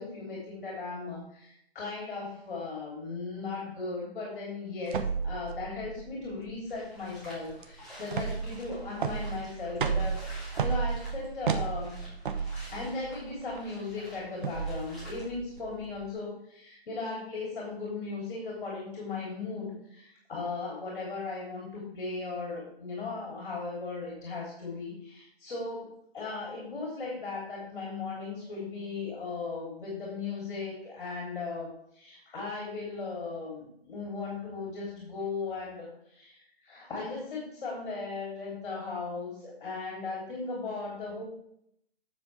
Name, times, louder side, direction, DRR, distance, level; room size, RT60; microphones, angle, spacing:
voice 1, 0.0-12.1 12.5-41.2, left 3 dB, 50° left, -4 dB, 3.5 m, -37 dB
sound 1, 4.9-16.1, right 6 dB, 55° right, 1.0 m, -34 dB
sound 2, 6.7-15.3, equal, ahead, 2.9 m, -51 dB
10.0 x 7.0 x 3.5 m, 0.73 s
figure-of-eight pair, 145°, 31 cm